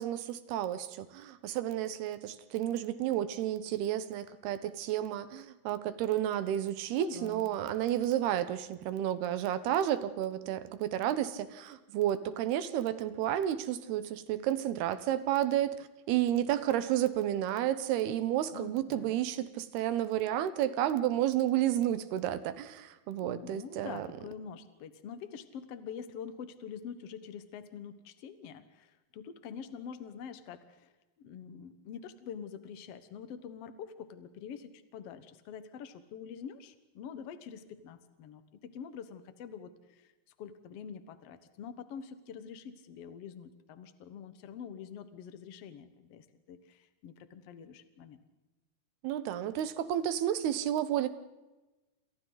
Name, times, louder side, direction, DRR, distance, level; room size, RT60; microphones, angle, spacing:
voice 1, 0.0-24.1 49.0-51.1, right 11 dB, 75° right, 12 dB, 3.0 m, -31 dB
voice 2, 7.0-7.5 18.5-19.2 23.1-30.9 31.2-40.1 40.4-48.2, left 7 dB, 65° left, 10 dB, 1.5 m, -46 dB
28.0 x 27.5 x 4.1 m, 1.1 s
omnidirectional pair, 4.7 m